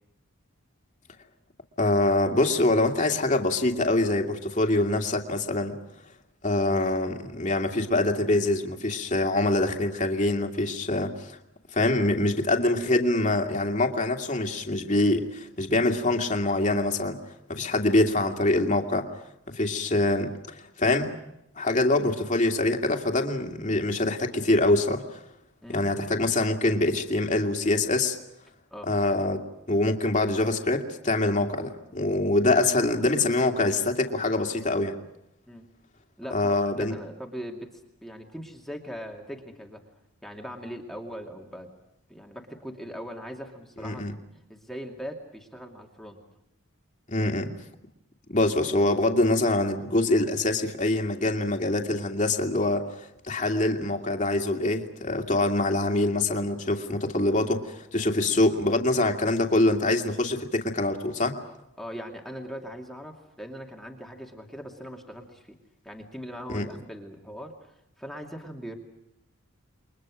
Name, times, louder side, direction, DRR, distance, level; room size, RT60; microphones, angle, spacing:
voice 1, 1.8-5.8 6.4-11.4 11.7-17.2 17.5-19.1 19.5-21.1 21.6-25.2 25.7-28.2 28.8-35.0 36.3-36.9 43.8-44.1 47.1-47.5 48.3-61.4 66.5-66.7, left 2 dB, 35° left, 3 dB, 2.5 m, -24 dB
voice 2, 36.2-39.8 40.2-41.7 42.1-44.2 44.5-46.2 47.2-47.3 61.8-65.6 65.8-68.7, equal, ahead, 1 dB, 2.6 m, -40 dB
29.0 x 23.0 x 6.3 m, 0.84 s
head